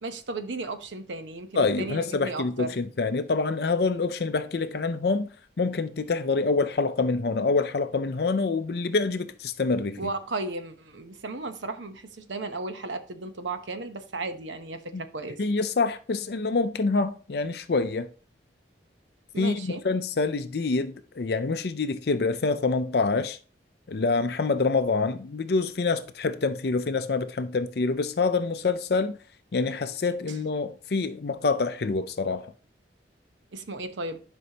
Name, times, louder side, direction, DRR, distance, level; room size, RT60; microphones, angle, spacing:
voice 1, 0.0-2.7 10.0-15.4 19.3-19.8 33.5-34.2, right 3 dB, 85° right, 0.9 m, -35 dB
voice 2, 1.6-5.3 5.6-10.0 14.9-15.0 15.4-18.1 19.4-23.4 23.9-29.2 29.5-32.5, left 4 dB, 60° left, 0.5 m, -26 dB
11.0 x 5.4 x 2.8 m
head